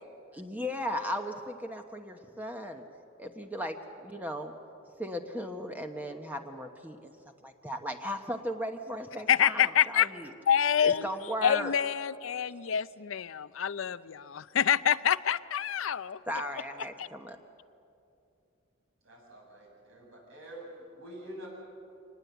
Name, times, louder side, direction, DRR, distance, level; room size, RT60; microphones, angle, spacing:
voice 1, 0.3-2.8 3.2-4.5 5.0-7.1 7.4-10.3 10.8-11.7 16.3-17.4, equal, 10° right, 1.0 m, -36 dB
voice 2, 9.3-10.1 10.5-11.1 11.4-16.2 17.0-17.1, left 8 dB, 75° left, 0.5 m, -27 dB
voice 3, 19.0-21.5, right 1 dB, 75° right, 7.9 m, -47 dB
25.0 x 19.5 x 8.1 m
head